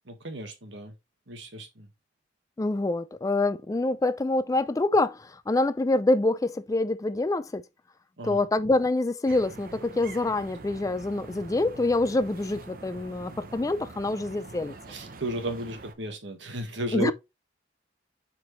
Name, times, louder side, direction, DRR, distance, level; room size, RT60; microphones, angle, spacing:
voice 1, 0.1-0.9 1.3-1.9 8.2-8.4 14.9-17.1, right 1 dB, 75° right, 1.5 m, -34 dB
voice 2, 2.6-7.6 8.2-14.7 16.9-17.1, left 2 dB, 20° left, 0.3 m, -26 dB
sound 1, 9.3-15.9, right 3 dB, 50° right, 0.8 m, -45 dB
7.1 x 4.6 x 3.1 m
head